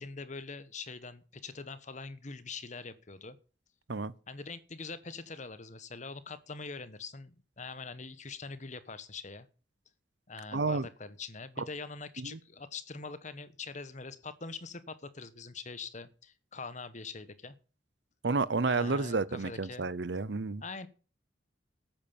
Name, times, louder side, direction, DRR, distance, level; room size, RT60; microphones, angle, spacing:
voice 1, 0.0-3.4 4.3-9.5 10.3-17.6 18.6-19.9 20.6-20.9, left 4 dB, 40° left, 1.2 m, -43 dB
voice 2, 10.5-10.9 12.2-12.4 18.2-20.6, right 3 dB, 65° right, 0.8 m, -30 dB
13.0 x 9.0 x 7.2 m
head